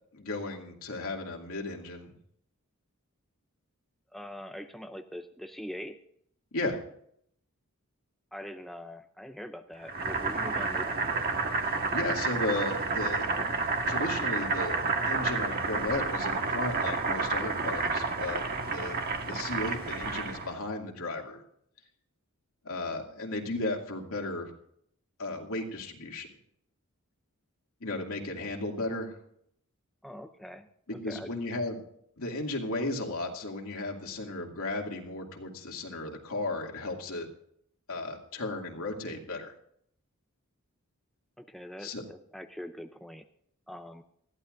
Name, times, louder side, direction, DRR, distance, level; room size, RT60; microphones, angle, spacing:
voice 1, 0.1-2.1 6.5-6.8 11.9-13.3 13.9-21.4 22.6-24.5 25.2-26.3 27.8-29.2 30.9-31.8 32.2-37.3 37.9-39.5 41.8-42.0, left 2 dB, 85° left, 1 dB, 2.5 m, -35 dB
voice 2, 4.1-6.0 8.3-11.3 30.0-30.7 31.1-31.3 41.4-43.2 43.7-44.0, equal, ahead, 7 dB, 0.5 m, -43 dB
Boiling, 9.9-20.5, right 4 dB, 45° right, 1.5 m, -30 dB
20.5 x 14.0 x 2.6 m, 0.67 s
head